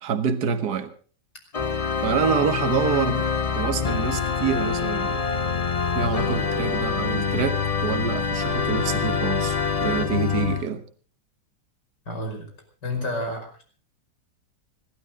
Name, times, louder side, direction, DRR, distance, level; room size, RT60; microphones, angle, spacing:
voice 1, 0.0-0.9 2.0-3.2 3.5-5.2 5.9-10.8, right 7 dB, 65° right, 1.8 m, -26 dB
Organ, 1.5-10.6, left 6 dB, 40° left, 0.5 m, -25 dB
voice 2, 12.1-12.5 12.8-13.6, left 1 dB, 75° left, 5.9 m, -30 dB
26.0 x 12.5 x 3.8 m
omnidirectional pair, 1.9 m